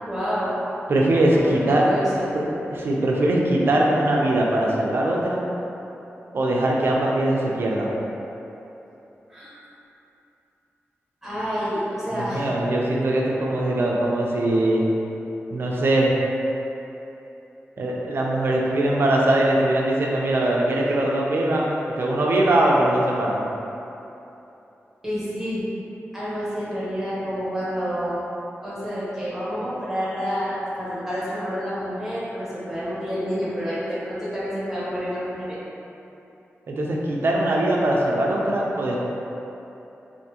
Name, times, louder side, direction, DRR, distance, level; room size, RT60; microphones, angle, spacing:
voice 1, 0.0-0.6 1.3-2.5 9.3-9.5 11.2-12.5 25.0-25.6 26.1-28.2 28.6-35.6, equal, 5° right, -10 dB, 0.8 m, -29 dB
voice 2, 0.9-1.8 2.3-5.4 6.3-8.0 12.1-14.8 15.5-16.1 17.8-23.4 36.7-39.0, right 1 dB, 55° right, -2 dB, 0.4 m, -21 dB
3.4 x 2.5 x 2.8 m, 3.0 s
wide cardioid pair, 165°, 5 cm